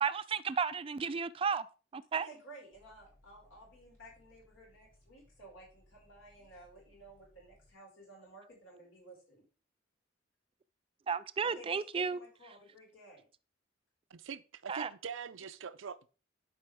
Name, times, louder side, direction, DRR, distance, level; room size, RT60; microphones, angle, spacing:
voice 1, 0.0-1.7 1.9-2.3 11.1-12.2 14.7-14.9, right 6 dB, 30° right, 0.3 m, -33 dB
voice 2, 2.1-9.5 11.4-13.3, right 2 dB, 90° left, 5.1 m, -54 dB
sound 1, 2.7-7.7, left 1 dB, 60° left, 4.3 m, -66 dB
voice 3, 14.1-16.1, right 6 dB, 80° right, 0.5 m, -43 dB
11.0 x 5.0 x 3.5 m
head